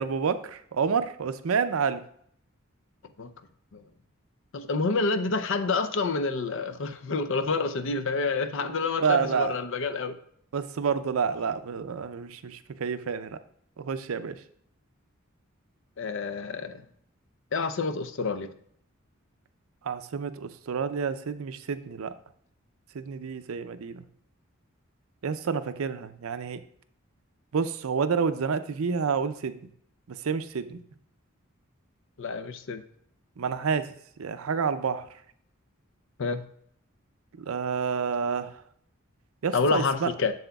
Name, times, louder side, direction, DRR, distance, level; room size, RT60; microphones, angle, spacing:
voice 1, 0.0-2.0 8.6-9.5 10.5-13.4 13.8-14.4 19.8-22.1 22.9-24.0 25.2-26.6 27.5-29.6 30.1-30.8 33.4-35.1 37.4-38.5 39.4-40.1, right 6 dB, 85° right, 11 dB, 0.5 m, -29 dB
voice 2, 4.5-10.2 16.0-16.8 17.5-18.5 32.2-32.8 36.2-36.5 39.5-40.3, left 4 dB, 65° left, 10 dB, 0.6 m, -28 dB
7.7 x 7.0 x 2.3 m, 0.66 s
head